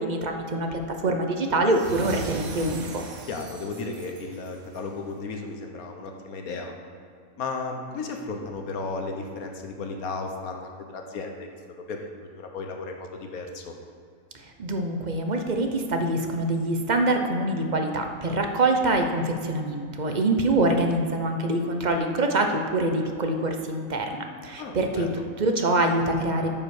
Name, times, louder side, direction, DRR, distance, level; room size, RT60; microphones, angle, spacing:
voice 1, 0.0-3.0 14.4-25.1 25.4-26.5, right 2 dB, 40° right, 4 dB, 0.7 m, -25 dB
sound 1, 1.6-5.0, right 3 dB, 80° right, 1.4 m, -38 dB
voice 2, 3.3-6.7 7.4-13.7 24.6-25.2, left 3 dB, 85° left, 3 dB, 1.4 m, -34 dB
8.9 x 5.5 x 6.5 m, 2.3 s
omnidirectional pair, 1.5 m